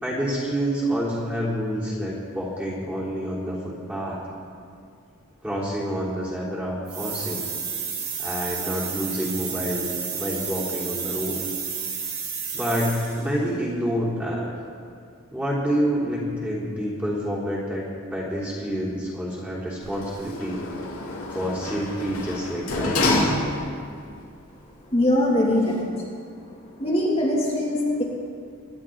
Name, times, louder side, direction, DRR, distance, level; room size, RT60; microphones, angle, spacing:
voice 1, 0.0-3.6 3.9-4.2 5.4-7.5 8.2-9.9 10.1-11.4 12.5-14.5 15.3-20.6 21.3-23.3, equal, 5° right, -7 dB, 3.5 m, -28 dB
sound 1, 6.9-13.3, right 6 dB, 75° right, 2.5 m, -31 dB
Sliding door, 19.8-23.9 24.4-24.5, left 2 dB, 75° left, 2.6 m, -28 dB
voice 2, 24.6-26.0 26.4-28.0, left 1 dB, 30° left, -6 dB, 2.4 m, -23 dB
25.0 x 11.0 x 3.8 m, 2.3 s
head